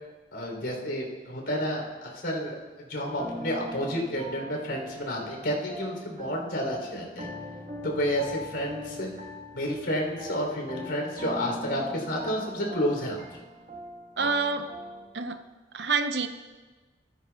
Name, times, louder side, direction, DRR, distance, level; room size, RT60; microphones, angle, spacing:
voice 1, 0.3-7.3 7.8-9.1 9.5-13.2, equal, 85° left, 0 dB, 3.1 m, -30 dB
sound 1, 3.0-15.1, equal, 35° right, 1.3 m, -41 dB
voice 2, 14.2-14.7 15.1-15.4 15.7-16.3, right 4 dB, 75° right, 9 dB, 0.7 m, -27 dB
14.5 x 13.0 x 2.3 m, 1.3 s
head